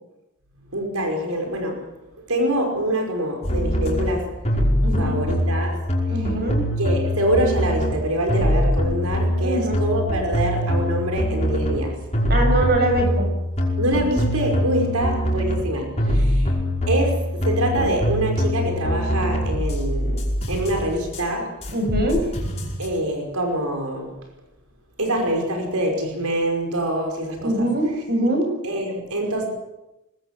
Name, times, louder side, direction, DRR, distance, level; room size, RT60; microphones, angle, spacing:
voice 1, 0.7-1.8 2.3-4.3 5.0-5.8 6.8-12.0 13.8-16.5 16.9-17.2 17.5-21.5 22.8-24.1 25.0-27.5 28.6-29.5, right 1 dB, 75° right, 2 dB, 5.4 m, -25 dB
sound 1, 3.4-4.1 4.4-7.9 8.3-11.8 12.1-15.6 16.0-21.2 21.6-23.0, equal, 30° left, 5.5 m, -23 dB
voice 2, 4.8-5.2 6.1-6.6 9.4-9.8 12.3-13.3 14.8-14.9 21.7-22.2 27.4-28.5, right 1 dB, 50° right, 4 dB, 7.1 m, -23 dB
23.5 x 20.0 x 7.6 m, 0.97 s
head